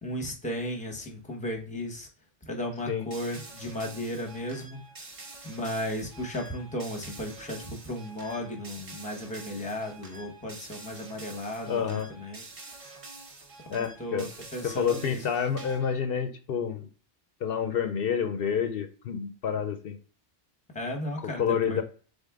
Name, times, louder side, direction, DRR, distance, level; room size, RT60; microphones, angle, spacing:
voice 1, 0.0-2.1 2.5-4.8 5.4-12.5 13.7-15.2 20.7-21.8, equal, 5° left, 2 dB, 0.8 m, -35 dB
sound 1, 3.1-16.0, right 3 dB, 35° right, 0.7 m, -47 dB
voice 2, 11.7-12.1 13.7-14.3 14.6-16.9 17.4-20.0 21.2-21.8, left 7 dB, 60° left, 7 dB, 0.7 m, -29 dB
4.0 x 3.6 x 3.6 m, 0.40 s
omnidirectional pair, 1.2 m